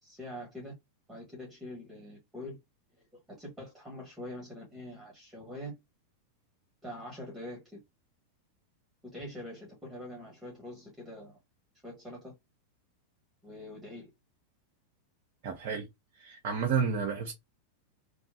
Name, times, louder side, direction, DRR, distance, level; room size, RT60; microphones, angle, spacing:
voice 1, 0.0-0.8 1.1-2.6 2.9-3.0 3.3-5.8 6.8-7.8 9.0-11.4 11.8-12.3 13.4-14.1, left 1 dB, 10° right, 1.4 m, -44 dB
voice 2, 15.4-15.9 16.2-17.3, right 6 dB, 50° right, 0.6 m, -31 dB
3.0 x 2.2 x 2.7 m
figure-of-eight pair, 90°, 0 cm